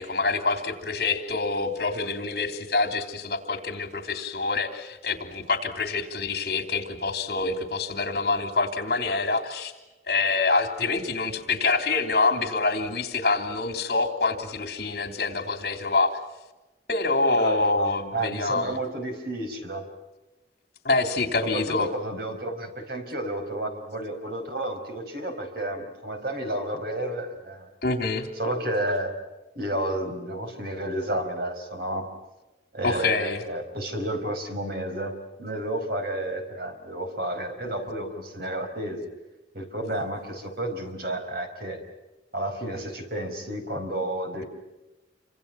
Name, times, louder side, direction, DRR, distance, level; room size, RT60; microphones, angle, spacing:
voice 1, 0.0-9.7 10.1-16.1 16.9-18.8 20.8-21.9 27.8-28.3 32.8-33.4, left 3 dB, 60° left, 6 dB, 3.3 m, -26 dB
voice 2, 17.4-19.9 21.4-27.7 28.4-29.1 29.5-32.1 32.7-39.0 39.5-41.8 42.3-44.4, right 1 dB, 60° right, 5 dB, 5.0 m, -31 dB
28.5 x 25.5 x 6.0 m, 1.1 s
head